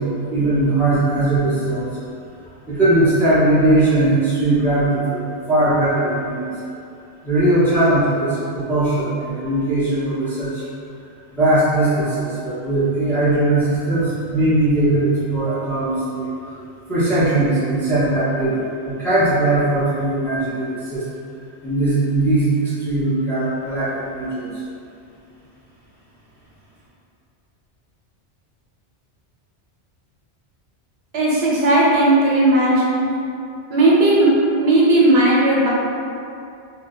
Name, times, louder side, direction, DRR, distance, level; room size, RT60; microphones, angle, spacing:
voice 1, 0.0-1.9 2.7-5.2 5.5-6.5 7.2-10.6 11.3-16.3 16.9-21.0 21.6-24.6, right 2 dB, ahead, -11 dB, 0.6 m, -19 dB
voice 2, 31.1-33.1 33.7-34.3 34.6-35.7, right 1 dB, 70° right, -5 dB, 0.9 m, -15 dB
2.6 x 2.2 x 4.0 m, 2.5 s
omnidirectional pair, 1.1 m